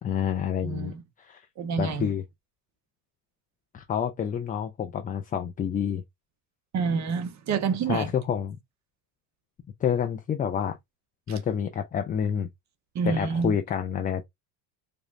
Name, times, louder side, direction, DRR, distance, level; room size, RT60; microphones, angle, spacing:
voice 1, 0.0-0.9 1.2-1.4 1.8-2.2 3.7-6.0 7.9-8.6 9.8-10.8 11.3-12.5 13.1-14.2, left 8 dB, 20° left, 0.3 m, -28 dB
voice 2, 0.6-1.0 1.6-2.1 6.7-8.1 11.3-11.4 12.9-13.5, right 5 dB, 35° right, 0.8 m, -28 dB
5.0 x 2.2 x 2.5 m
supercardioid pair, 105°, 49 cm